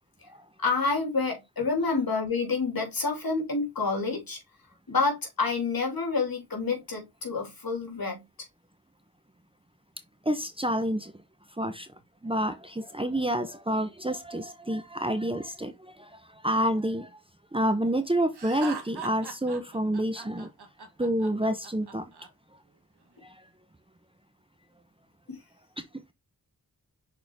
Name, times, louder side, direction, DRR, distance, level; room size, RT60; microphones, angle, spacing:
voice 1, 0.6-4.4 4.9-8.2 25.3-25.4, left 4 dB, 65° left, 3.2 m, -28 dB
voice 2, 10.2-11.1 11.6-11.9 12.2-17.1 17.5-20.5 21.0-22.1 23.2-23.3, right 1 dB, 15° right, 0.8 m, -28 dB
Laughter, 18.3-22.3, right 4 dB, 75° right, 1.4 m, -40 dB
6.5 x 4.4 x 3.5 m
wide cardioid pair, 60°, 39 cm